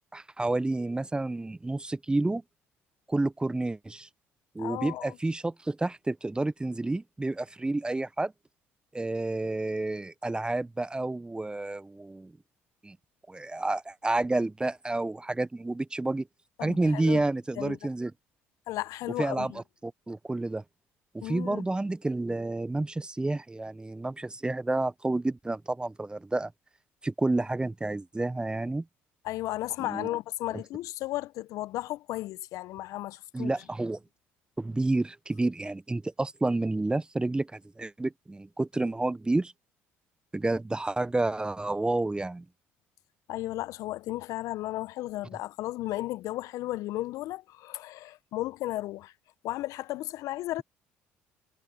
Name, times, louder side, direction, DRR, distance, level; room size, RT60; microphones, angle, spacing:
voice 1, 0.1-2.4 3.1-4.1 4.5-8.3 8.9-12.3 12.8-13.0 13.3-16.3 16.6-18.1 19.2-20.6 21.1-26.5 27.0-28.8 29.8-30.1 33.3-34.0 34.6-39.5 40.3-42.4, right 2 dB, 15° right, 1.1 m, -30 dB
voice 2, 4.6-5.2 16.6-17.2 17.6-17.8 18.7-19.6 21.2-21.6 29.2-33.5 43.3-49.1 49.4-50.6, left 16 dB, 65° left, 1.2 m, -34 dB
hypercardioid pair, 55°, 6 cm